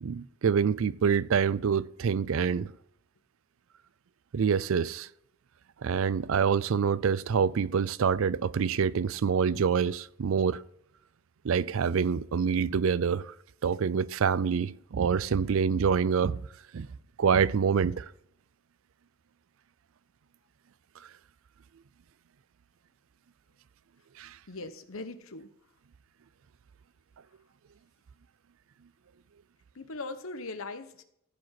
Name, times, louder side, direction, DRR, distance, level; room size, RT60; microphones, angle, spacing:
voice 1, 0.0-2.7 4.3-5.1 5.8-10.6 11.4-13.3 13.6-16.5 16.7-16.9 17.2-18.1 24.2-24.4, right 6 dB, 65° right, 0.4 m, -26 dB
voice 2, 24.5-25.5 29.7-31.0, left 2 dB, 70° left, 1.0 m, -40 dB
14.5 x 5.2 x 5.9 m
head